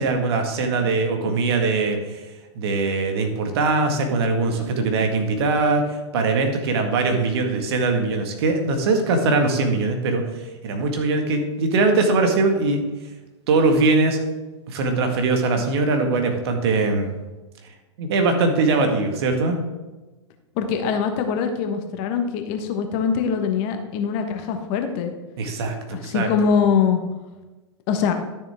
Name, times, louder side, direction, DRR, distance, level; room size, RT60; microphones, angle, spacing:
voice 1, 0.0-2.2 2.6-5.9 6.1-10.2 10.6-12.8 13.5-14.2 14.7-17.1 18.0-19.6 25.4-26.3, right 3 dB, 55° right, 4 dB, 1.8 m, -21 dB
voice 2, 20.6-25.1 25.9-27.0 27.9-28.1, left 6 dB, 40° left, 6 dB, 1.3 m, -23 dB
12.5 x 7.0 x 3.6 m, 1.1 s
figure-of-eight pair, 105°, 16 cm